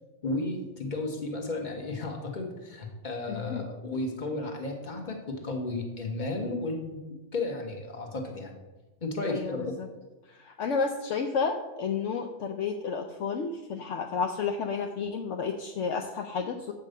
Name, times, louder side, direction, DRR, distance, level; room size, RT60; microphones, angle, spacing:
voice 1, 0.2-7.0 7.3-8.6 9.0-9.7, left 2 dB, 35° left, 2 dB, 1.5 m, -33 dB
voice 2, 3.3-3.7 9.3-9.9 10.3-16.7, left 5 dB, 65° left, 3 dB, 1.0 m, -31 dB
8.2 x 5.5 x 6.6 m, 1.1 s
omnidirectional pair, 1.4 m